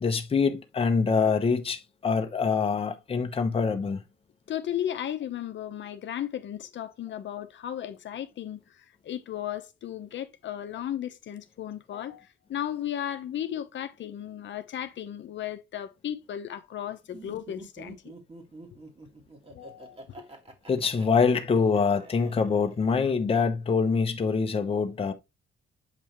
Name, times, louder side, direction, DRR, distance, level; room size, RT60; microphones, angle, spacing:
voice 1, 0.0-4.0 20.7-25.1, left 5 dB, 25° left, 0.9 m, -25 dB
voice 2, 4.5-18.0 19.5-20.2, left 10 dB, 65° left, 0.9 m, -35 dB
Laughter, 17.1-23.1, right 2 dB, 30° right, 2.2 m, -47 dB
7.7 x 5.4 x 3.0 m
wide cardioid pair, 155°, 21 cm